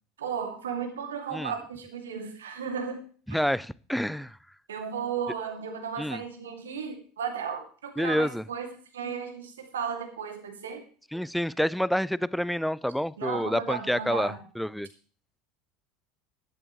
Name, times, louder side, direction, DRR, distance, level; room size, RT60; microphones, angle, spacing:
voice 1, 0.2-3.0 3.3-3.4 4.7-8.7 8.9-10.8 13.2-14.4, right 6 dB, 75° right, 4 dB, 2.5 m, -34 dB
voice 2, 3.3-4.4 6.0-6.2 8.0-8.4 11.1-14.9, equal, ahead, 21 dB, 0.4 m, -28 dB
13.5 x 12.0 x 3.2 m, 0.42 s
figure-of-eight pair, 70°, 0 cm